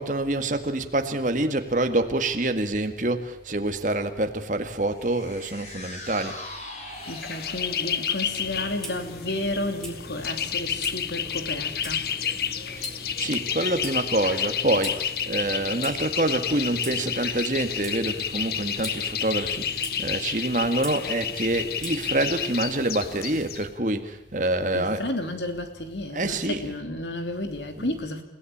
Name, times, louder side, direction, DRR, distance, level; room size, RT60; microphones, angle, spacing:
voice 1, 0.0-6.4 12.8-12.9 13.2-25.1 26.1-26.7 27.8-28.0, right 1 dB, 45° right, 1.9 m, -26 dB
sound 1, 4.9-11.3 11.7-11.8, left 2 dB, 40° left, 4.9 m, -43 dB
sound 2, 7.0-23.6, left 8 dB, 60° left, 1.2 m, -30 dB
voice 2, 7.1-12.1 24.7-28.2, left 1 dB, 85° left, 3.1 m, -32 dB
Clock, 8.3-22.6, equal, 5° left, 3.4 m, -42 dB
29.0 x 17.0 x 8.7 m
head